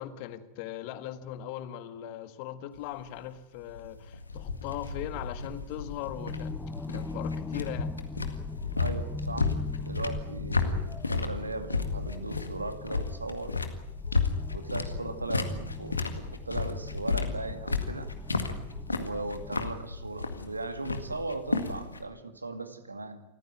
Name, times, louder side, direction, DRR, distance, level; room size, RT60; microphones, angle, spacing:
voice 1, 0.0-6.6 6.9-7.9, left 12 dB, 45° left, 12 dB, 1.6 m, -39 dB
sound 1, 2.7-22.0, left 4 dB, 80° left, 1.9 m, -33 dB
sound 2, 4.3-19.8, left 3 dB, 10° left, 0.9 m, -42 dB
voice 2, 8.8-13.5 14.5-18.1 18.9-23.2, right 2 dB, 80° right, 9 dB, 2.2 m, -38 dB
27.0 x 15.0 x 9.4 m, 0.93 s
figure-of-eight pair, 90°, 0 cm